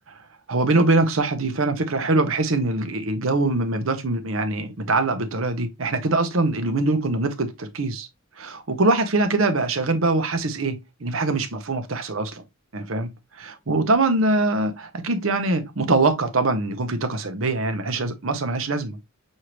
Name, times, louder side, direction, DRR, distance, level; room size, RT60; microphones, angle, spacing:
voice 1, 0.5-8.1 8.4-12.4 12.7-13.1 13.4-19.0, right 2 dB, 75° right, 0.9 m, -23 dB
6.4 x 2.7 x 3.0 m
head